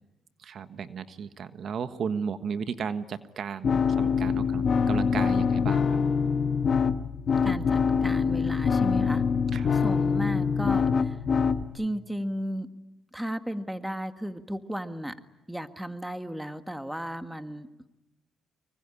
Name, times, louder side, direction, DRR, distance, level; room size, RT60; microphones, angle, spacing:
voice 1, 0.4-6.0 9.5-9.8, right 6 dB, 60° right, 11 dB, 1.4 m, -34 dB
sound 1, 3.6-11.6, left 6 dB, 50° left, 1.5 m, -24 dB
voice 2, 7.4-9.2 9.7-11.2 11.7-12.7 13.1-15.2 15.5-17.9, equal, 5° right, 9 dB, 1.7 m, -34 dB
25.5 x 23.5 x 9.9 m, 0.96 s
cardioid pair, 90°, 0 cm